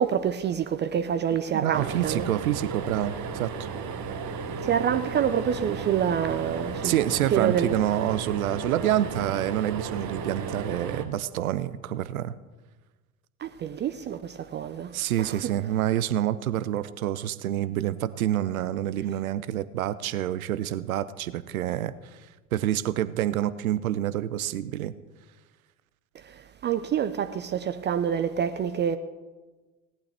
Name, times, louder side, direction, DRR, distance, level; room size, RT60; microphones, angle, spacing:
voice 1, 0.0-2.3 4.6-6.9 7.3-7.8 13.4-14.9 15.2-15.4 26.2-29.0, right 8 dB, 25° right, 0.5 m, -27 dB
voice 2, 1.5-3.7 6.8-12.3 14.9-21.9 22.5-24.9, right 12 dB, 75° right, 0.6 m, -27 dB
sound 1, 1.7-11.0, right 5 dB, 40° right, 1.2 m, -34 dB
17.5 x 11.5 x 3.4 m
figure-of-eight pair, 65°, 43 cm